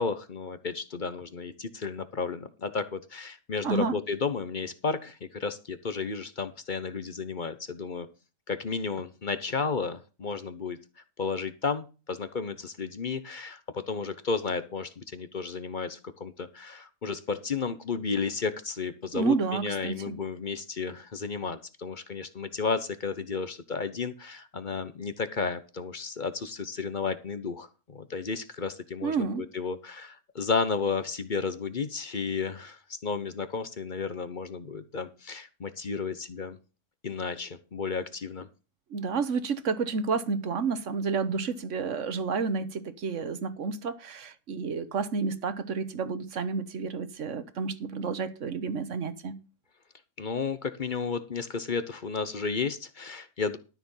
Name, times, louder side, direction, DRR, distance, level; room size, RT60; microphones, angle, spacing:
voice 1, 0.0-8.1 8.5-10.8 11.2-36.6 37.0-38.5 50.2-53.6, left 5 dB, 40° left, 0.8 m, -33 dB
voice 2, 3.6-4.0 19.1-20.0 29.0-29.5 38.9-49.4, right 5 dB, 50° right, 1.4 m, -30 dB
12.5 x 6.7 x 5.6 m
omnidirectional pair, 1.8 m